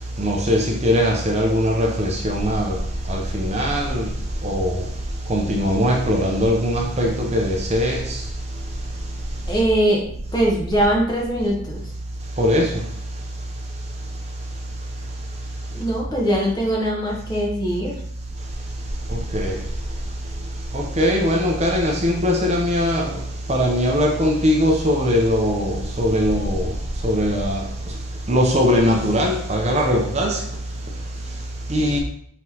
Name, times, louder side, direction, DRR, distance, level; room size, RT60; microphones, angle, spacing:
voice 1, 0.2-2.8 3.1-4.1 4.4-4.8 5.3-8.2 12.4-12.7 19.3-19.5 20.7-23.1 23.5-26.7 27.0-27.6 28.3-30.4 31.7-32.0, equal, 30° right, 0.6 m, -20 dB
voice 2, 9.5-11.9 15.7-18.0, right 1 dB, 20° left, 0.9 m, -21 dB
5.7 x 3.1 x 2.8 m
head